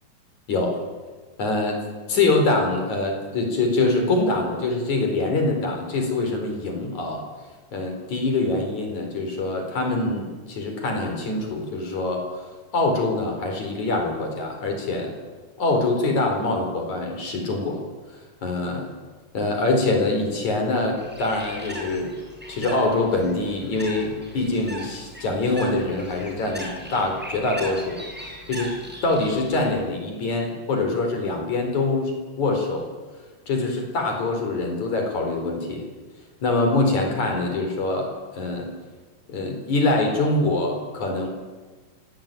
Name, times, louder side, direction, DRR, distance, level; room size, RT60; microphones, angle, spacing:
voice 1, 1.4-1.8 2.1-7.2 7.7-12.2 12.7-15.1 15.6-17.8 18.4-18.9 19.3-22.2 22.5-28.0 28.5-28.7 29.0-32.9 33.5-35.9 36.4-38.7 39.3-41.3, left 2 dB, 65° left, 3 dB, 5.7 m, -24 dB
Bird, 21.0-29.8, equal, 5° right, 7.0 m, -39 dB
23.5 x 18.0 x 9.2 m, 1.4 s
omnidirectional pair, 3.6 m